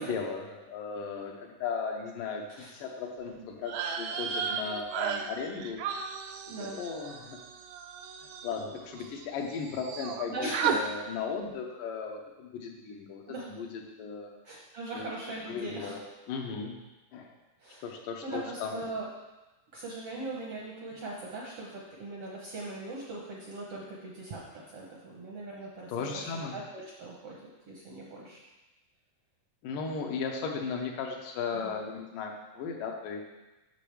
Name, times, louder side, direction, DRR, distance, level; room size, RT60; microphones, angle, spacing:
voice 1, 0.0-5.8 6.6-7.4 8.4-14.3 14.9-15.1 15.5-16.0 16.3-16.8 17.1-17.3 17.8-18.8 25.9-26.6 29.6-33.2, left 5 dB, 85° left, 1 dB, 2.5 m, -36 dB
sound 1, 3.6-9.3 9.5-10.2 10.5-10.8, right 7 dB, 85° right, 1.5 m, -35 dB
voice 2, 6.5-6.8 10.3-10.8 13.3-13.5 14.4-15.9 17.6-17.8 18.2-19.1 19.7-26.1 26.5-28.4 31.5-31.8, right 2 dB, 70° right, -3 dB, 1.4 m, -40 dB
8.2 x 6.2 x 3.3 m, 1.1 s
omnidirectional pair, 3.7 m